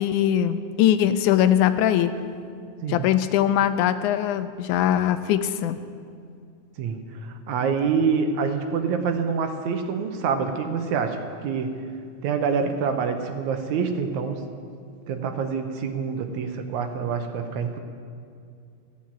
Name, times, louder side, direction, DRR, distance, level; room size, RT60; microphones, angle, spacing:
voice 1, 0.0-2.1 2.9-5.8, left 10 dB, 80° left, 12 dB, 2.0 m, -21 dB
voice 2, 6.8-11.7 12.2-14.4 15.1-17.8, right 6 dB, 75° right, 7 dB, 2.1 m, -26 dB
14.0 x 7.3 x 9.0 m, 2.4 s
omnidirectional pair, 3.5 m